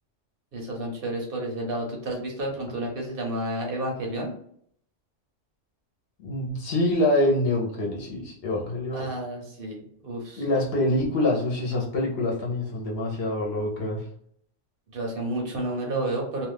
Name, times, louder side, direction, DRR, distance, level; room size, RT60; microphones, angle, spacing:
voice 1, 0.5-4.3 8.9-10.4 14.9-16.5, right 1 dB, 55° right, 0 dB, 0.8 m, -31 dB
voice 2, 6.2-9.1 10.4-14.1, left 1 dB, 60° left, -2 dB, 0.9 m, -25 dB
2.4 x 2.3 x 3.3 m, 0.66 s
omnidirectional pair, 1.2 m